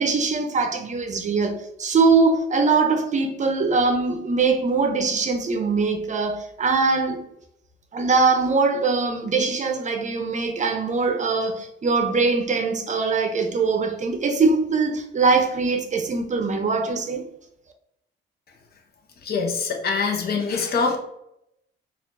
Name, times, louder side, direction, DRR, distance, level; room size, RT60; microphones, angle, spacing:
voice 1, 0.0-7.2 7.9-17.3, right 4 dB, 40° right, 0.6 m, -22 dB
voice 2, 19.2-21.0, left 4 dB, 50° left, 0.8 m, -24 dB
4.2 x 2.4 x 2.6 m
cardioid pair, 90°, 20 cm